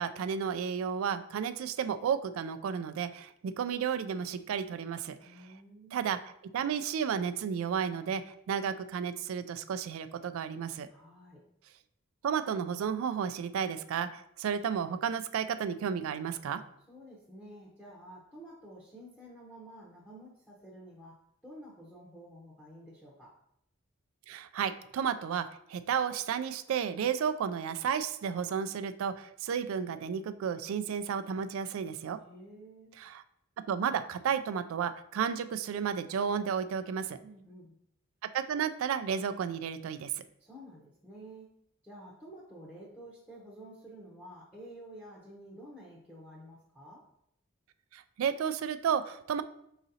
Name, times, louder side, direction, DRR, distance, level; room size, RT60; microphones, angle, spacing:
voice 1, 0.0-5.2 5.9-10.9 12.2-16.6 24.3-32.2 33.0-33.2 33.7-37.2 38.3-40.2 47.9-49.4, right 7 dB, 80° right, 10 dB, 0.3 m, -32 dB
voice 2, 5.2-6.0 10.9-11.4 16.9-23.3 32.2-32.9 37.2-37.8 40.4-41.5 41.8-47.0, right 1 dB, 10° left, -7 dB, 0.7 m, -50 dB
4.9 x 3.9 x 2.7 m, 0.73 s
head